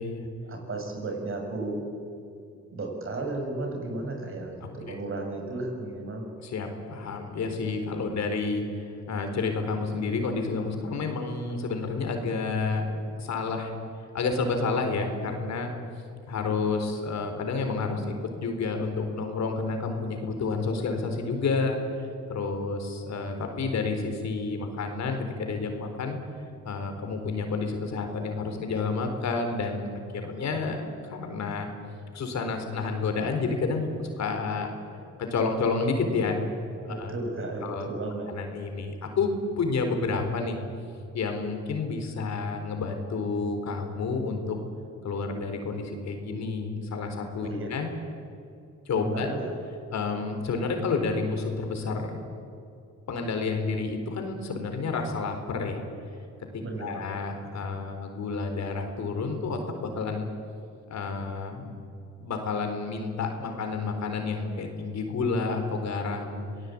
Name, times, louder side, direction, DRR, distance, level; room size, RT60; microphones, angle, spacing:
voice 1, 0.4-1.9 2.7-6.3 36.9-38.3 47.4-47.7 48.9-49.5 56.6-57.1, right 2 dB, 45° right, 2 dB, 6.9 m, -34 dB
voice 2, 6.4-12.9 13.2-13.7 14.1-15.7 16.3-21.8 22.3-26.2 26.6-30.8 31.1-31.7 32.1-34.7 35.2-36.4 36.8-37.1 37.6-37.9 38.3-40.6 41.1-44.6 45.0-47.9 48.9-49.3 49.9-52.2 53.1-55.8 56.5-60.3 60.9-61.7 62.2-66.4, left 4 dB, 65° left, 5 dB, 4.2 m, -30 dB
26.0 x 18.0 x 8.7 m, 2.6 s
cardioid pair, 90°, 30 cm